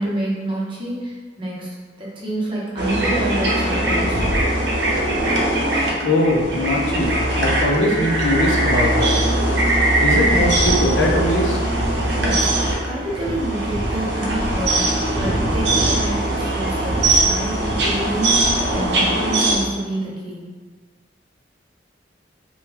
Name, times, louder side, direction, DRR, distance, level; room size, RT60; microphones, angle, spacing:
voice 1, 0.0-1.7 2.0-4.3 12.2-12.5 12.8-14.9 15.2-20.4, right 1 dB, 30° right, -6 dB, 0.8 m, -27 dB
sound 1, 2.8-19.6, right 1 dB, 65° right, 0.7 m, -20 dB
voice 2, 6.0-9.2 10.0-11.6, left 1 dB, 85° left, 0 dB, 0.6 m, -21 dB
3.5 x 2.2 x 2.9 m, 1.5 s
head